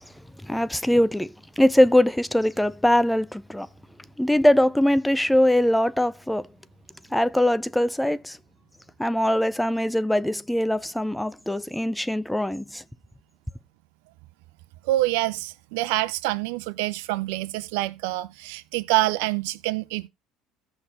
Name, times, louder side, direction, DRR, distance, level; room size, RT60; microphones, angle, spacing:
voice 1, 0.4-3.7 4.2-6.5 7.1-8.4 9.0-12.8, left 1 dB, 5° left, 0.4 m, -22 dB
voice 2, 14.8-20.1, right 17 dB, 75° right, 0.6 m, -26 dB
16.0 x 5.8 x 2.7 m
hypercardioid pair, 70°, 0 cm